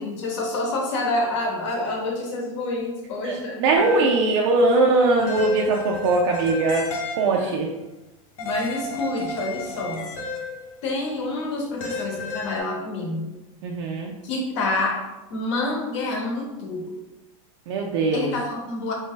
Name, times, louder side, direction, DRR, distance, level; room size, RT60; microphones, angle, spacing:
voice 1, 0.0-4.0 4.4-4.9 7.3-7.5 8.4-10.1 10.8-13.3 14.2-15.0 15.3-17.0 18.1-18.9, left 2 dB, 60° left, 1 dB, 0.9 m, -28 dB
voice 2, 3.2-7.7 13.6-14.1 17.7-18.3, right 3 dB, 60° right, 0 dB, 0.4 m, -21 dB
sound 1, 3.7-4.3 5.2-7.5 8.4-10.8 11.8-12.6, left 3 dB, 85° left, 0.9 m, -32 dB
3.3 x 2.7 x 3.6 m, 1.0 s
supercardioid pair, 180°, 17 cm